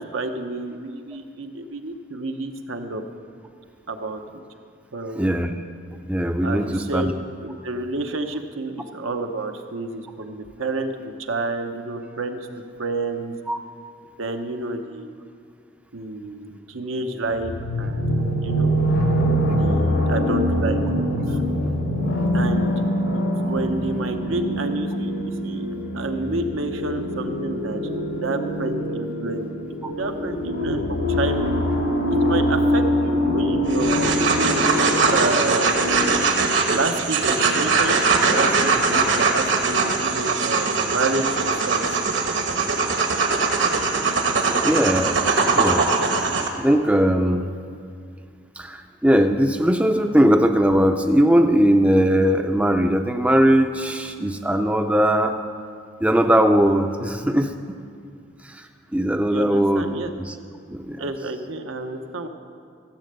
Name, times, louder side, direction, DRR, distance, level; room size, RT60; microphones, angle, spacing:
voice 1, 0.0-3.0 3.9-4.2 4.9-5.3 6.4-7.1 7.4-12.4 12.8-13.3 14.2-15.1 15.9-17.5 17.8-18.7 19.5-20.8 21.3-21.4 22.3-22.8 23.1-25.7 25.9-27.8 28.2-29.5 29.8-31.5 32.1-34.7 35.1-35.7 36.7-41.8 59.3-60.1 61.0-62.3, right 2 dB, 85° right, 5 dB, 0.9 m, -29 dB
voice 2, 5.2-5.5 6.1-7.1 13.5-13.6 44.6-45.2 45.5-45.9 46.6-47.5 48.6-55.4 56.0-57.5 58.4-58.7 58.9-60.4 60.7-61.1, equal, 5° right, 5 dB, 0.4 m, -19 dB
sound 1, 17.4-36.1, equal, 85° left, 2.1 m, -24 dB
sound 2, 33.7-46.5, right 4 dB, 65° right, 1.2 m, -21 dB
14.5 x 7.6 x 6.8 m, 2.3 s
head